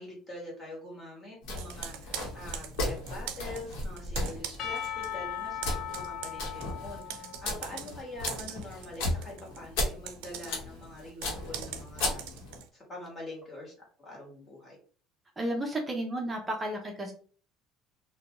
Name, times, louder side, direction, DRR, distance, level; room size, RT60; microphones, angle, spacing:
voice 1, 0.0-2.7 3.1-12.4 12.7-13.7 14.0-14.8, left 1 dB, 15° left, -3 dB, 1.2 m, -44 dB
sound 1, 1.4-12.6, left 1 dB, 80° left, 1.0 m, -36 dB
Computer keyboard, 1.6-5.1 5.4-12.7, right 9 dB, 90° right, 0.4 m, -43 dB
Percussion / Church bell, 4.6-8.9, left 9 dB, 45° left, 0.3 m, -39 dB
voice 2, 15.4-17.1, right 1 dB, 15° right, 1 dB, 0.5 m, -32 dB
2.6 x 2.2 x 2.9 m, 0.42 s
cardioid pair, 160°, 0 cm